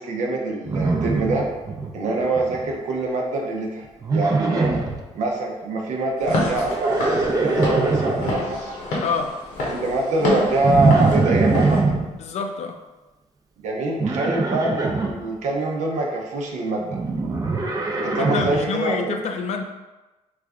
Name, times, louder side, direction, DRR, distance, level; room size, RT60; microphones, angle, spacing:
voice 1, 0.0-1.4 1.9-4.7 5.1-8.8 9.7-11.9 13.6-17.0 17.9-19.2, right 2 dB, 75° right, -1 dB, 0.7 m, -24 dB
Livestock farm animals working animals, 0.7-1.9 2.2-2.7 4.0-5.0 6.6-8.3 10.6-12.0 14.0-15.1 16.9-18.6, right 3 dB, 30° right, 0.5 m, -22 dB
Walk footsteps / Siren, 6.2-11.8, left 2 dB, 85° left, 0.9 m, -28 dB
voice 2, 9.0-9.3 12.2-12.8 18.2-19.6, left 5 dB, 65° left, 5 dB, 0.4 m, -27 dB
3.1 x 2.5 x 3.5 m, 1.1 s
cardioid pair, 100°, 12 cm